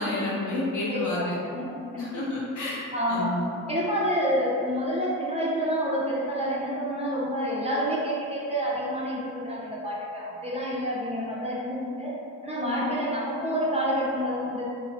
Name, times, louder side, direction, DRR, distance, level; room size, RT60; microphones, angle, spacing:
voice 1, 0.0-1.3 2.0-3.5 12.6-13.0, left 1 dB, 60° left, -6 dB, 1.0 m, -30 dB
voice 2, 0.9-2.3 2.9-3.4 3.7-12.1 12.4-14.6, equal, 20° right, -7 dB, 0.8 m, -28 dB
2.8 x 2.3 x 4.1 m, 2.4 s
cardioid pair, 90°, 34 cm